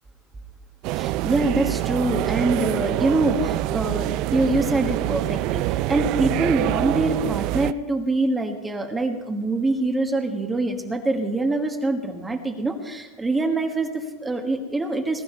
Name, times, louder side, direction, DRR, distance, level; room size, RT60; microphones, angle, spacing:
sound 1, 0.8-7.7, right 16 dB, 45° right, 0.4 m, -25 dB
voice 1, 1.0-15.2, right 2 dB, 10° right, 4 dB, 1.3 m, -24 dB
20.0 x 11.5 x 4.3 m, 1.2 s
supercardioid pair, 150°, 0 cm